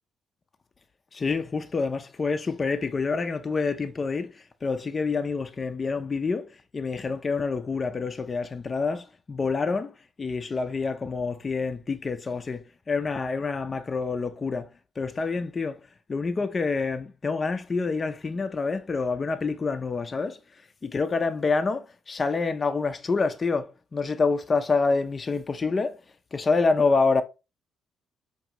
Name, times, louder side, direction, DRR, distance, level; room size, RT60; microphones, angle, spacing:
voice 1, 1.1-15.8 16.1-26.0 26.3-27.2, left 4 dB, 35° left, 0.4 m, -27 dB
4.7 x 2.6 x 2.8 m
cardioid pair, 90°, 0 cm